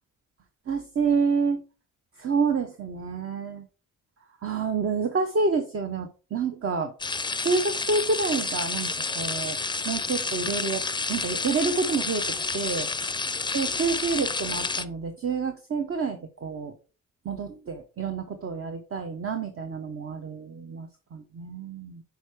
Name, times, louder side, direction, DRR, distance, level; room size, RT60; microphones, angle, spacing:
voice 1, 0.7-1.6 2.2-3.6 4.4-6.9 7.4-8.9 9.2-9.6 9.8-10.8 11.1-12.2 12.5-12.9 13.5-16.7 17.2-22.0, right 4 dB, 45° right, 5 dB, 1.0 m, -28 dB
sound 1, 7.0-14.8, left 4 dB, 15° left, 0.5 m, -30 dB
6.2 x 4.6 x 4.8 m, 0.35 s
cardioid pair, 95°, 31 cm